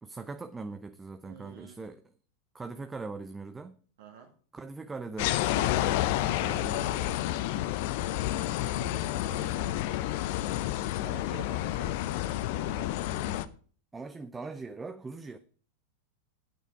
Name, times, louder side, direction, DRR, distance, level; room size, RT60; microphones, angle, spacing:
voice 1, 0.0-2.0 2.5-3.8 4.5-7.3 13.9-15.4, right 3 dB, 15° right, 0.6 m, -41 dB
voice 2, 1.2-1.8 4.0-4.3 7.8-7.9 8.2-10.1 11.0-13.0, right 7 dB, 55° right, 1.9 m, -50 dB
sound 1, 5.2-13.5, left 14 dB, 50° left, 0.6 m, -30 dB
9.2 x 9.1 x 4.7 m
figure-of-eight pair, 90°, 0 cm